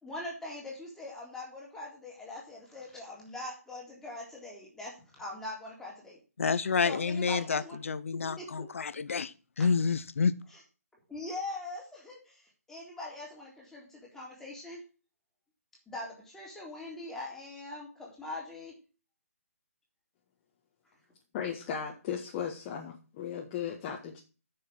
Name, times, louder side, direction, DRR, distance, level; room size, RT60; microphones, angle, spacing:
voice 1, 0.0-6.2 6.8-7.8 8.4-8.7 9.6-9.7 11.1-14.9 15.9-18.7, left 2 dB, 5° left, -3 dB, 3.6 m, -42 dB
voice 2, 6.4-10.4, left 5 dB, 60° left, 17 dB, 0.9 m, -29 dB
voice 3, 21.3-24.2, left 8 dB, 25° left, -1 dB, 1.6 m, -36 dB
9.3 x 6.8 x 6.3 m, 0.34 s
figure-of-eight pair, 145°, 8 cm